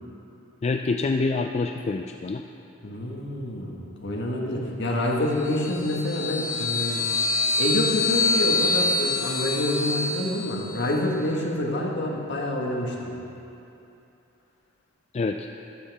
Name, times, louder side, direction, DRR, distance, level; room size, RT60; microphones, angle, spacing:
voice 1, 0.6-2.4 15.1-15.5, left 3 dB, 30° left, 5 dB, 0.3 m, -26 dB
voice 2, 2.8-7.0 7.3-13.1, left 1 dB, 60° left, -1 dB, 1.6 m, -27 dB
sound 1, 5.4-10.9, left 3 dB, 85° left, 2.0 m, -26 dB
13.0 x 12.5 x 3.5 m, 2.8 s
head